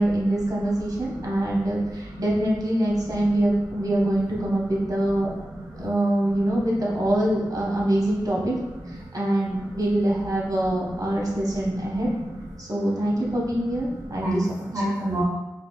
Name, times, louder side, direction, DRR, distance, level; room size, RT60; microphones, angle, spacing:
voice 1, 0.0-5.3 5.8-8.6 8.9-12.1 12.6-14.7, right 1 dB, 55° right, -3 dB, 1.0 m, -24 dB
voice 2, 12.1-12.4 13.8-14.4 14.7-15.2, right 1 dB, 35° right, -5 dB, 0.6 m, -30 dB
3.9 x 3.0 x 2.2 m, 1.0 s
wide cardioid pair, 75°, 8 cm